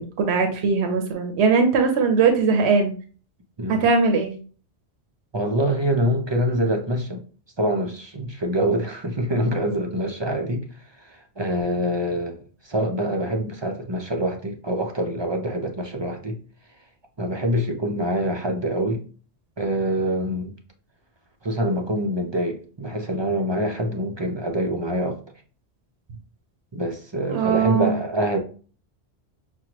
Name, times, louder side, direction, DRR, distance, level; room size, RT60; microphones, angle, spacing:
voice 1, 0.0-2.9 3.7-4.3 27.3-28.0, right 5 dB, 80° right, 1.0 m, -20 dB
voice 2, 5.3-7.2 7.6-10.6 11.0-16.4 17.2-19.0 19.6-20.5 21.4-25.2 26.7-28.4, right 1 dB, 30° right, 0.5 m, -25 dB
6.1 x 2.2 x 2.9 m
omnidirectional pair, 1.1 m